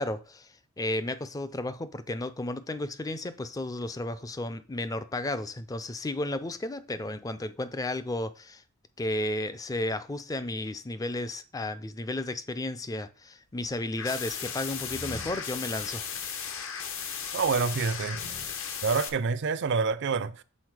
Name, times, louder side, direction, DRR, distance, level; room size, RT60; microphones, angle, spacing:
voice 1, 0.0-8.6 9.0-16.1, left 2 dB, 15° left, 0.4 m, -33 dB
sound 1, 13.5-13.9 14.4-16.3 16.5-16.7 17.2-18.5, left 1 dB, 85° left, 2.0 m, -47 dB
sound 2, 14.0-19.1, left 7 dB, 60° left, 0.9 m, -36 dB
voice 2, 17.3-18.3 18.8-20.4, right 5 dB, 55° right, 0.4 m, -27 dB
6.3 x 4.0 x 4.8 m
head